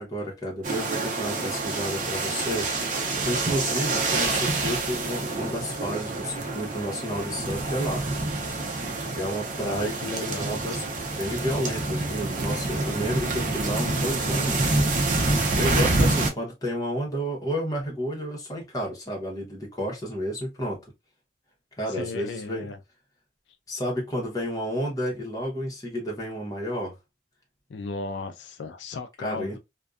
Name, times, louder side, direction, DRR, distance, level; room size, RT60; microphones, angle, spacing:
voice 1, 0.0-2.7 3.2-8.1 9.1-10.8 11.2-14.8 15.5-20.8 21.8-22.7 23.7-26.9 29.2-29.6, equal, 20° left, 0.9 m, -31 dB
sound 1, 0.6-16.3, right 2 dB, 45° right, 0.6 m, -27 dB
voice 2, 9.6-10.6 15.3-15.4 21.9-22.8 27.7-29.6, left 4 dB, 90° left, 0.4 m, -35 dB
2.5 x 2.2 x 2.3 m
head